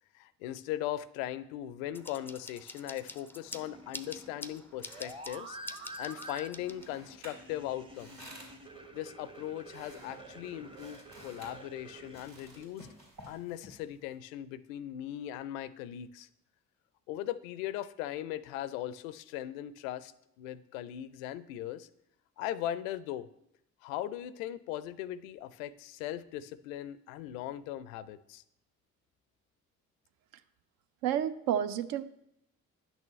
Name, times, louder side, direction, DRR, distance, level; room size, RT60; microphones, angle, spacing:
voice 1, 0.1-5.6 5.8-8.3 8.9-12.9 13.3-16.3 17.1-20.1 20.4-21.9 22.4-23.3 23.8-28.4, left 12 dB, 70° left, 17 dB, 0.5 m, -39 dB
sound 1, 1.9-7.2, left 2 dB, 5° left, 0.4 m, -47 dB
sound 2, 3.4-12.6, right 1 dB, 10° right, 0.8 m, -49 dB
sound 3, 4.5-14.1, equal, 85° right, 2.8 m, -55 dB
voice 2, 31.0-32.0, right 10 dB, 55° right, 13 dB, 0.6 m, -30 dB
10.0 x 6.2 x 3.1 m, 0.78 s
figure-of-eight pair, 40°, 42 cm